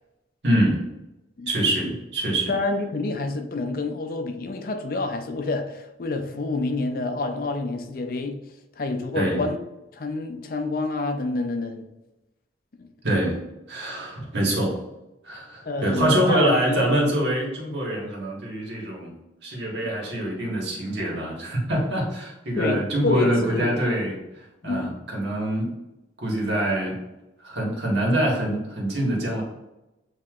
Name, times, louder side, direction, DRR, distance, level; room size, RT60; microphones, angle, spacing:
voice 1, 0.4-0.8 1.5-2.5 9.1-9.5 13.0-13.4 13.7-14.8 15.2-19.1 19.4-25.7 26.2-27.0 27.4-29.4, right 1 dB, 80° right, 1.4 m, -25 dB
voice 2, 2.5-8.4 8.8-9.6 9.9-11.9 12.8-12.9 15.7-16.9 22.6-23.8 24.6-25.0, left 3 dB, 55° left, 0.5 m, -28 dB
7.6 x 2.8 x 2.4 m
head